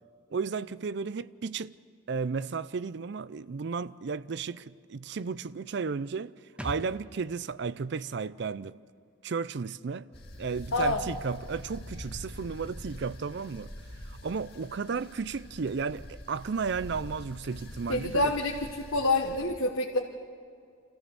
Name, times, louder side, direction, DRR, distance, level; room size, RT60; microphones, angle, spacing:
voice 1, 0.3-1.7 2.1-6.4 6.6-8.8 9.2-10.1 10.4-13.7 14.1-18.3, right 5 dB, 55° right, 0.4 m, -33 dB
sound 1, 6.6-10.1 10.4-10.5, equal, 5° right, 1.0 m, -46 dB
sound 2, 10.1-19.4, left 1 dB, 50° left, 2.5 m, -45 dB
voice 2, 17.9-20.0, left 2 dB, 85° left, 1.2 m, -27 dB
27.0 x 14.5 x 7.0 m
head